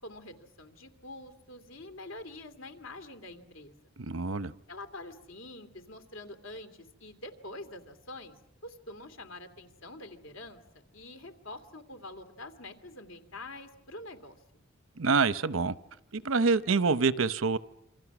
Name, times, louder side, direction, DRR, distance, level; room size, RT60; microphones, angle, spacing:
voice 1, 0.0-3.7 4.7-8.3 8.6-10.6 10.9-14.4, left 2 dB, 85° left, 7 dB, 2.7 m, -46 dB
voice 2, 4.0-4.5 15.0-15.7 16.1-17.6, right 4 dB, 85° right, 14 dB, 0.8 m, -26 dB
28.0 x 26.0 x 6.1 m, 0.86 s
head